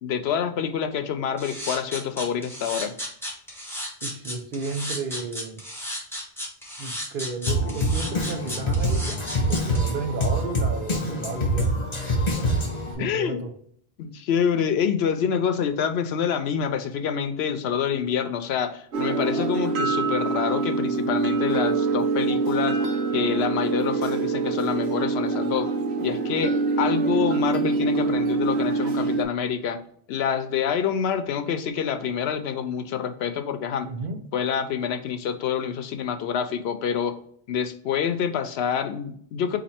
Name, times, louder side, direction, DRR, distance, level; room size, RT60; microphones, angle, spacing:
voice 1, 0.0-2.9 13.0-13.4 14.0-22.8 23.1-25.7 26.0-29.8 30.1-33.9 34.3-37.1 37.5-39.6, left 7 dB, 85° left, 9 dB, 0.8 m, -27 dB
sound 1, 1.4-9.8, equal, ahead, 1.2 m, -34 dB
voice 2, 4.0-5.6 6.8-9.2 9.5-11.8 13.0-13.5 33.8-34.2, right 4 dB, 60° right, 5 dB, 0.9 m, -33 dB
Drum kit, 7.5-12.9, equal, 40° left, 1.1 m, -25 dB
sound 2, 18.9-29.2, right 4 dB, 85° right, 0.9 m, -25 dB
4.1 x 2.8 x 4.2 m, 0.62 s
omnidirectional pair, 1.1 m